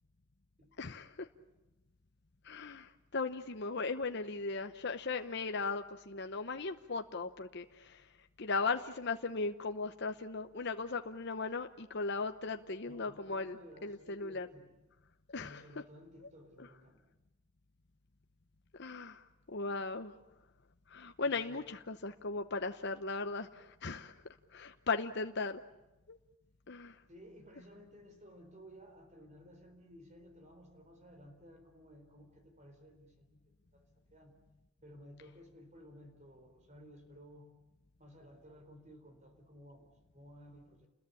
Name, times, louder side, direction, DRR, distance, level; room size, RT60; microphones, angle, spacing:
voice 1, 0.8-1.3 2.4-8.0 8.4-14.5 15.3-15.6 18.8-19.2 19.5-20.1 20.9-24.1 24.5-25.6 26.1-26.2 26.7-26.9, left 4 dB, 50° left, 7 dB, 0.9 m, -37 dB
voice 2, 12.8-14.8 15.3-17.0 21.2-21.7 27.1-34.4 34.8-37.6 38.0-40.9, equal, 35° right, 5 dB, 4.1 m, -56 dB
29.5 x 21.5 x 8.5 m, 1.0 s
head